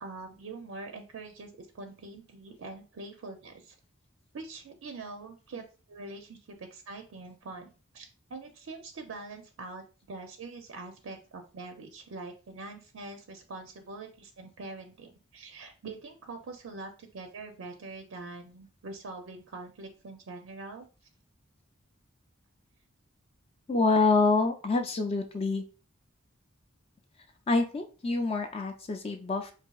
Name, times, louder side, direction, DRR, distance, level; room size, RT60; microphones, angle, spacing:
voice 1, 0.0-3.8 4.3-7.7 7.9-20.9, right 3 dB, 80° right, 5 dB, 0.5 m, -44 dB
voice 2, 23.7-25.6 27.5-29.5, left 3 dB, 30° left, 5 dB, 0.4 m, -26 dB
4.0 x 2.6 x 2.3 m, 0.35 s
head